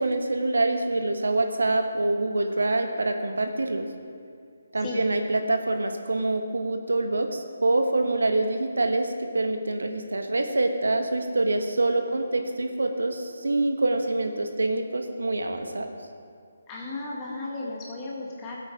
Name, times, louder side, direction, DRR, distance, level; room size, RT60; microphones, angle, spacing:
voice 1, 0.0-3.8 4.7-15.9, right 2 dB, 80° right, 5 dB, 1.4 m, -25 dB
voice 2, 16.7-18.6, left 2 dB, 20° left, -5 dB, 2.2 m, -35 dB
17.0 x 8.3 x 5.0 m, 2.3 s
figure-of-eight pair, 150°, 0 cm